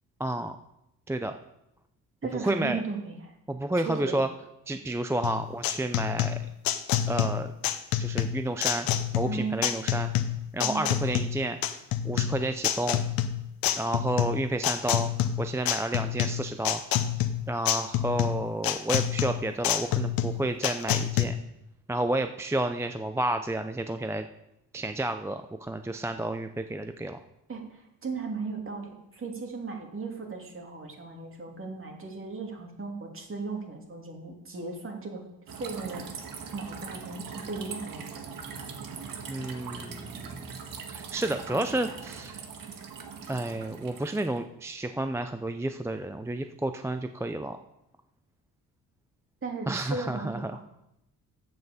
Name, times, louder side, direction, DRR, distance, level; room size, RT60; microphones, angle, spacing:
voice 1, 0.2-0.6 1.1-1.3 2.3-2.8 3.5-4.3 4.7-6.4 7.1-7.5 8.0-8.9 9.1-10.1 10.5-11.6 12.0-13.0 13.8-15.1 15.4-16.8 17.5-21.4 21.9-24.3 24.7-27.2 39.3-40.6 40.9-42.4 43.3-47.6 49.7-50.7, right 1 dB, 10° right, 7 dB, 0.5 m, -30 dB
voice 2, 2.2-3.4 3.8-4.2 9.3-9.6 10.6-10.9 27.5-36.1 36.5-38.2 49.4-50.7, right 4 dB, 35° right, 2 dB, 2.5 m, -36 dB
sound 1, 5.2-21.2, left 10 dB, 80° left, 0.9 m, -28 dB
sound 2, 35.5-44.4, right 6 dB, 70° right, 1.6 m, -41 dB
8.0 x 7.7 x 7.0 m, 0.87 s
cardioid pair, 95°, 35 cm